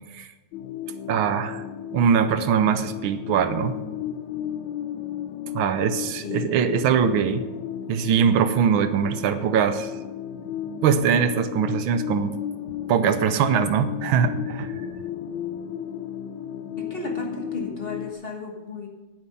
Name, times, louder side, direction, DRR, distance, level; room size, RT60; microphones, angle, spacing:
sound 1, 0.5-18.1, left 10 dB, 75° left, 1.3 m, -34 dB
voice 1, 1.1-1.6 1.9-3.8 5.5-7.5 7.9-9.9 10.8-12.3 12.9-14.7, right 7 dB, 85° right, 11 dB, 1.6 m, -22 dB
voice 2, 6.2-6.6 16.8-18.9, left 2 dB, 30° left, 1 dB, 1.5 m, -34 dB
10.5 x 8.6 x 5.7 m, 1.2 s
omnidirectional pair, 2.1 m